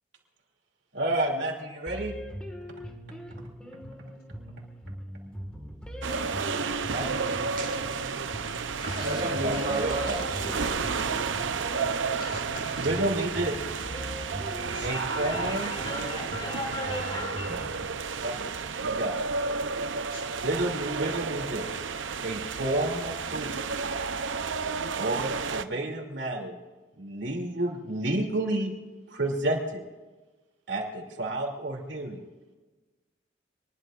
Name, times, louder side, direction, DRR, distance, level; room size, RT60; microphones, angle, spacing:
voice 1, 0.9-2.1 6.9-7.3 9.4-10.2 12.8-13.5 14.8-15.7 18.2-19.1 20.4-21.7 22.2-23.5 25.0-26.6 27.0-28.7 29.1-29.8 30.7-32.2, right 1 dB, 70° right, 1 dB, 2.8 m, -30 dB
sound 1, 1.9-17.9, equal, 5° left, 1.7 m, -41 dB
sound 2, 6.0-25.6, right 5 dB, 90° right, 0.7 m, -32 dB
sound 3, 7.6-8.0 8.5-11.2 12.0-12.9, right 2 dB, 45° right, 2.2 m, -34 dB
voice 2, 8.8-9.2 9.5-10.2 10.6-10.7 12.1-12.9 14.7-14.9 20.1-20.2, left 2 dB, 55° left, -2 dB, 6.4 m, -42 dB
voice 3, 14.9-17.7, left 2 dB, 25° left, -1 dB, 5.7 m, -37 dB
25.0 x 20.5 x 2.5 m, 1.2 s
head